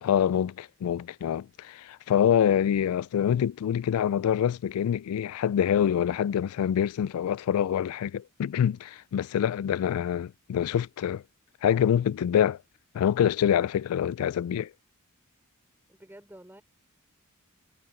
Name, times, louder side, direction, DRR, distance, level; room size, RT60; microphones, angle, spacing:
voice 1, 0.0-11.2 11.6-12.6 12.9-14.7, left 9 dB, 75° left, 0.3 m, -25 dB
voice 2, 15.9-16.6, right 1 dB, 10° right, 4.4 m, -50 dB
head